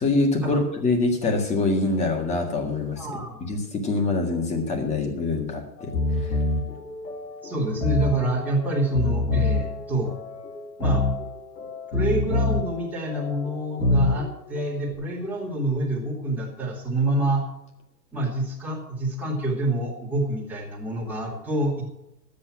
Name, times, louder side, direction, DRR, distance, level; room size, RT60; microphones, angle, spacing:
voice 1, 0.0-3.1 3.4-6.4, left 3 dB, 15° left, 3 dB, 1.8 m, -25 dB
voice 2, 3.0-3.6 7.4-10.1 10.8-11.1 11.9-17.4 18.1-21.8, right 1 dB, 5° right, -5 dB, 2.5 m, -27 dB
sound 1, 5.8-14.9, left 2 dB, 90° left, 3.7 m, -27 dB
12.5 x 8.5 x 6.0 m, 0.85 s
supercardioid pair, 160°, 49 cm